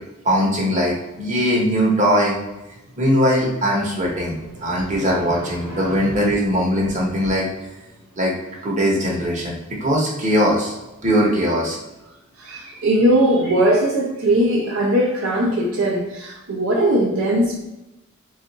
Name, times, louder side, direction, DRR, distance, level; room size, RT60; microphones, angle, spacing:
voice 1, 0.2-2.4 3.0-7.5 8.2-8.3 8.6-10.8 11.0-11.8, equal, 35° right, -3 dB, 0.9 m, -20 dB
voice 2, 4.6-6.1 12.4-17.6, right 1 dB, 65° right, -1 dB, 0.6 m, -20 dB
3.4 x 2.4 x 3.9 m, 0.96 s
head